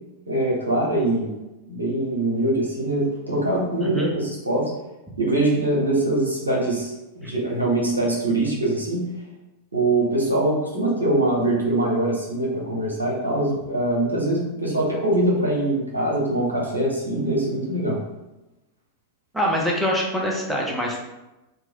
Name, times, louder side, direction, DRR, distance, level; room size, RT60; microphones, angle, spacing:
voice 1, 0.3-1.3 1.7-4.7 5.2-9.1 9.7-18.0, right 1 dB, 80° right, -3 dB, 0.9 m, -23 dB
voice 2, 3.8-4.1 7.2-7.3 19.3-21.0, equal, ahead, -3 dB, 0.7 m, -24 dB
2.5 x 2.3 x 3.4 m, 1.0 s
figure-of-eight pair, 90°, 0 cm